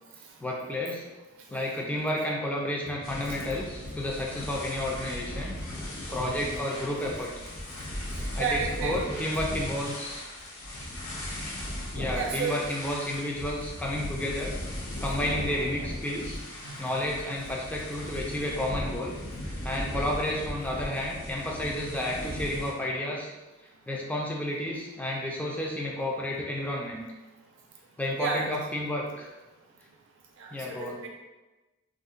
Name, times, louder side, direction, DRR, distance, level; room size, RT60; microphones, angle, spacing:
voice 1, 0.4-1.0 1.5-5.6 6.1-7.3 8.4-10.2 11.9-14.5 15.0-16.4 16.8-19.1 19.6-23.3 23.9-27.0 28.0-29.3 30.5-31.0, left 1 dB, 5° left, -2 dB, 0.3 m, -31 dB
sound 1, 3.0-22.7, left 1 dB, 90° left, 0.7 m, -37 dB
voice 2, 8.4-9.2 12.1-12.6 16.6-17.0 28.2-28.5 30.4-31.1, right 5 dB, 60° right, 0 dB, 0.5 m, -32 dB
2.4 x 2.1 x 3.7 m, 1.1 s
head